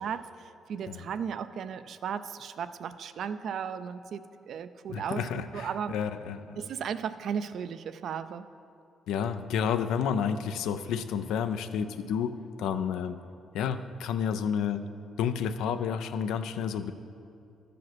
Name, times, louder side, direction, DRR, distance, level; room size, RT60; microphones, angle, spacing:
voice 1, 0.0-5.9 6.6-8.5, right 7 dB, 65° right, 12 dB, 0.4 m, -35 dB
voice 2, 4.9-6.6 9.1-12.3 12.6-13.2 13.5-14.8 15.2-16.9, left 7 dB, 85° left, 10 dB, 0.4 m, -30 dB
11.5 x 5.0 x 6.0 m, 2.5 s
cardioid pair, 90°, 0 cm